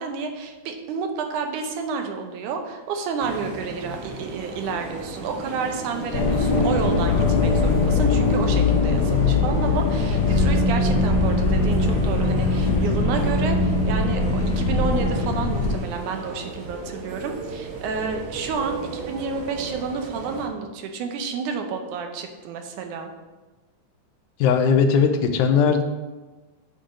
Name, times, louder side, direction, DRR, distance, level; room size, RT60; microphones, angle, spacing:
voice 1, 0.0-23.1, right 5 dB, 85° right, 4 dB, 2.3 m, -30 dB
sound 1, 3.2-20.5, right 3 dB, 55° right, 1.1 m, -37 dB
sound 2, 6.1-15.8, left 3 dB, 65° left, 1.3 m, -21 dB
voice 2, 24.4-25.8, left 6 dB, 90° left, 7 dB, 2.2 m, -18 dB
8.3 x 3.9 x 6.3 m, 1.2 s
omnidirectional pair, 3.5 m